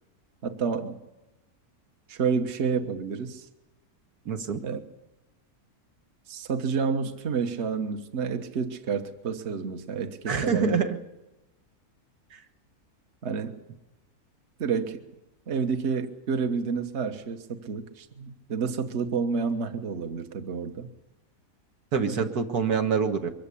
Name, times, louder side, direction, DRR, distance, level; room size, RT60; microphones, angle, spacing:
voice 1, 0.4-1.0 2.1-3.4 4.6-4.8 6.3-10.8 13.2-13.6 14.6-15.0 15.5-20.9, right 5 dB, 50° right, 7 dB, 1.5 m, -29 dB
voice 2, 4.3-4.6 10.3-11.0 12.3-12.4 21.9-23.3, right 6 dB, 85° right, 5 dB, 2.0 m, -26 dB
23.0 x 15.0 x 8.5 m, 1.0 s
omnidirectional pair, 1.6 m